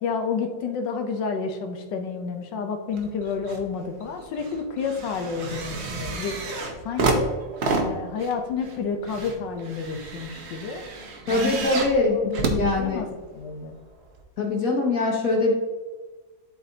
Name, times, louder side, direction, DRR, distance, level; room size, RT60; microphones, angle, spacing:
voice 1, 0.0-6.4 6.8-7.3 7.8-10.8 11.3-11.7 12.1-13.1 13.3-13.8, left 5 dB, 75° left, 5 dB, 1.4 m, -30 dB
sound 1, 2.9-3.7 4.0-13.4 14.2-14.3, right 3 dB, 50° right, 0.9 m, -30 dB
voice 2, 11.3-12.2 12.6-13.0 14.4-15.5, left 3 dB, 55° left, 0 dB, 1.2 m, -22 dB
12.0 x 4.1 x 2.7 m, 1.4 s
omnidirectional pair, 2.0 m